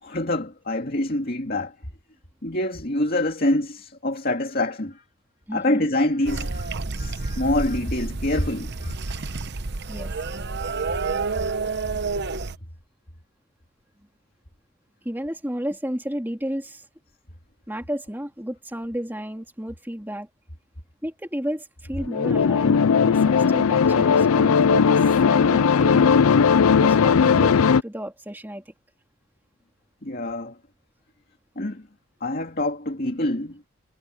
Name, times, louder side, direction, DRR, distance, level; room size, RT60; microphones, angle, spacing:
voice 1, 0.0-1.7 2.4-5.0 5.5-6.7 7.0-9.2 30.0-30.6 31.6-31.9 32.2-33.6, left 1 dB, 40° left, 2.4 m, -26 dB
voice 2, 5.5-5.9 9.9-10.1 15.0-16.8 17.7-20.3 21.0-26.1 26.8-27.6 27.8-28.7, equal, 10° right, 2.8 m, -32 dB
sound 1, 6.2-12.6, right 3 dB, 50° right, 0.9 m, -29 dB
sound 2, 22.1-27.8, left 6 dB, 75° left, 0.5 m, -18 dB
head